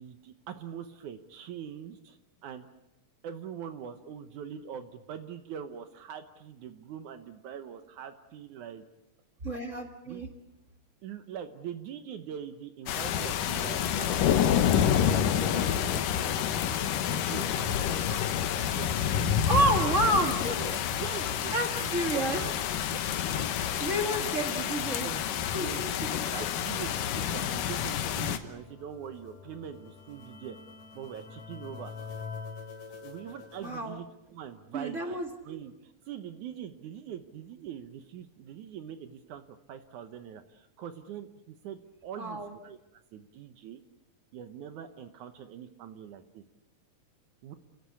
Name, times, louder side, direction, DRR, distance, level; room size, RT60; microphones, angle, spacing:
voice 1, 0.0-2.2 2.4-2.7 3.2-8.8 10.1-10.2 11.0-18.1 18.4-21.5 21.8-23.0 23.3-23.7 24.1-24.6 25.0-25.2 25.6-25.8 26.1-30.6 30.9-31.9 33.0-35.2 35.4-39.4 39.7-43.8 44.3-46.4 47.4-47.5, right 9 dB, 75° right, 8 dB, 2.4 m, -43 dB
voice 2, 9.4-10.3 19.5-20.8 21.5-22.4 23.8-25.1 25.5-25.9 33.6-34.0 34.7-35.3 42.2-42.5, right 1 dB, 30° right, 4 dB, 1.8 m, -29 dB
sound 1, 12.9-28.4, left 9 dB, 90° left, 2.8 m, -28 dB
sound 2, 27.4-33.8, left 5 dB, 65° left, 3.4 m, -46 dB
29.5 x 16.0 x 8.4 m, 0.91 s
omnidirectional pair, 3.7 m